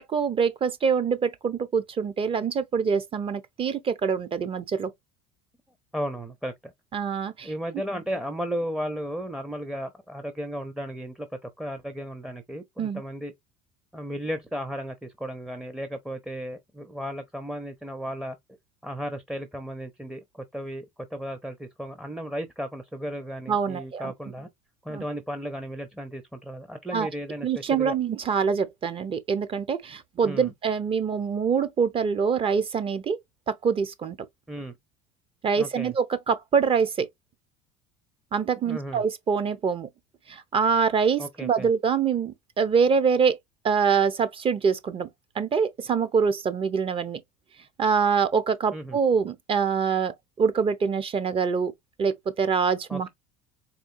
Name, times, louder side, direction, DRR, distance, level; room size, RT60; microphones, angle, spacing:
voice 1, 0.0-4.9 6.9-7.5 12.8-13.0 23.5-24.1 24.9-25.0 26.9-27.1 27.4-33.2 33.5-34.2 35.4-37.1 38.3-39.9 40.3-43.4 43.6-45.1 45.3-47.2 47.8-51.7 52.0-53.1, right 6 dB, 35° right, 0.9 m, -25 dB
voice 2, 5.9-6.7 7.4-13.3 13.9-18.4 18.8-20.9 21.1-24.5 24.8-28.0 30.2-30.5 34.5-34.7 35.6-35.9 38.6-39.0 41.2-41.7 48.7-49.0 52.9-53.1, equal, 5° right, 0.7 m, -34 dB
4.3 x 3.2 x 2.6 m
supercardioid pair, 95°, 16 cm